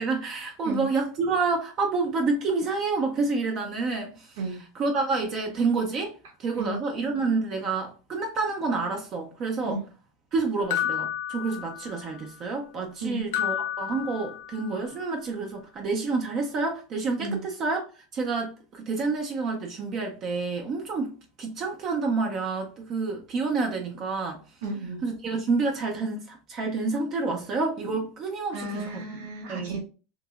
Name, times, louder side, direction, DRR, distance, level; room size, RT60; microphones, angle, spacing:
voice 1, 0.0-4.4 4.7-9.8 10.3-24.4 25.0-29.0 29.5-29.8, right 4 dB, 30° right, 0.5 m, -28 dB
sound 1, 10.7-12.2 13.3-14.8, left 11 dB, 70° left, 0.4 m, -31 dB
voice 2, 24.6-25.0 28.5-29.8, right 2 dB, 85° right, 0.7 m, -33 dB
2.9 x 2.8 x 2.3 m
supercardioid pair, 165°, 0 cm